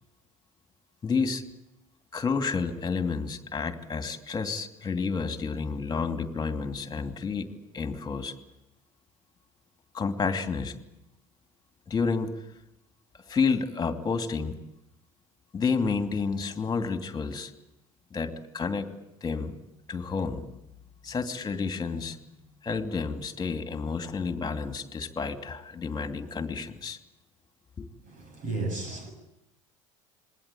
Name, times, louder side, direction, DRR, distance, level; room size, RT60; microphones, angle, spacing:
voice 1, 1.0-1.4 2.1-8.3 9.9-10.8 11.9-12.3 13.3-14.6 15.5-17.5 18.1-18.9 19.2-19.5 19.9-20.4 21.0-22.2 22.6-27.0 27.8-27.9, left 5 dB, 20° left, 2.8 m, -30 dB
voice 2, 28.1-29.1, right 3 dB, 45° right, 7.3 m, -33 dB
27.0 x 21.5 x 8.9 m
figure-of-eight pair, 70°, 18 cm